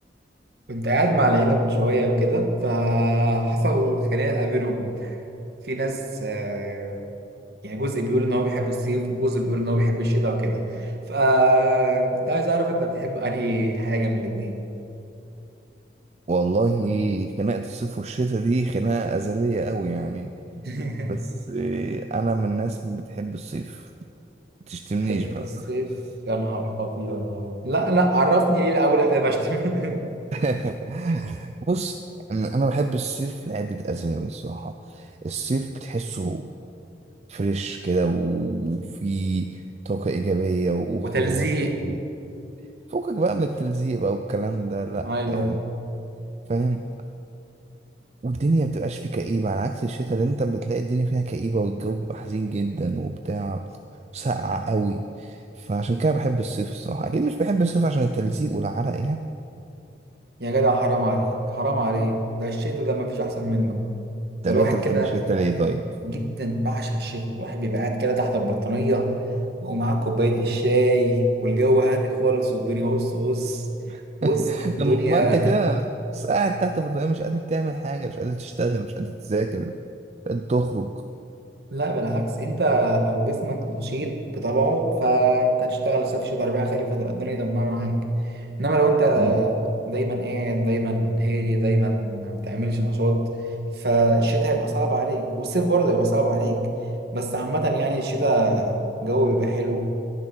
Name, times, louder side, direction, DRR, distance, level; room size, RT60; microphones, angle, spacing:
voice 1, 0.7-5.1 5.7-7.0 7.6-14.6 20.6-21.2 25.1-25.9 26.3-30.0 41.0-41.8 45.0-45.6 60.4-63.9 64.4-65.1 66.0-69.2 69.6-73.6 74.2-75.5 81.7-88.0 88.6-93.3 93.8-96.7 97.1-99.9, right 1 dB, 60° right, 3 dB, 1.4 m, -23 dB
voice 2, 16.3-20.3 21.1-23.9 24.7-25.5 30.3-32.0 32.3-36.5 37.3-41.5 41.8-42.0 42.9-45.6 46.5-46.8 48.2-53.6 54.1-59.3 64.4-65.9 73.9-79.8 80.3-80.9 89.2-89.4, right 3 dB, 35° right, 7 dB, 0.4 m, -26 dB
11.0 x 11.0 x 6.1 m, 2.8 s
head